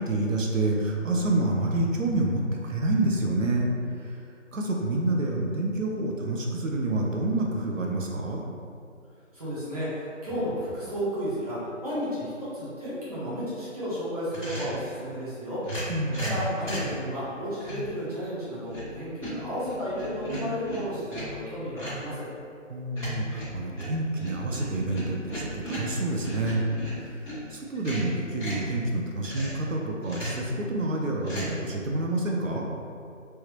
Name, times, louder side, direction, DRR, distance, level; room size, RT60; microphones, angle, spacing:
voice 1, 0.1-3.7 4.0-4.1 4.5-8.4 15.9-16.5 22.7-26.7 27.5-32.7, right 2 dB, 80° right, 0 dB, 0.8 m, -28 dB
voice 2, 9.3-15.6 16.3-22.3, equal, 30° right, -12 dB, 1.2 m, -33 dB
sound 1, 14.3-14.8 15.6-17.0 17.6-17.9 18.4-18.9 19.2-21.4 21.8-22.1 23.0-27.4 27.7-28.7 29.2-29.7 30.0-30.5 31.2-31.5, right 1 dB, 10° right, 1.4 m, -36 dB
3.4 x 3.1 x 3.0 m, 2.4 s
figure-of-eight pair, 175°, 38 cm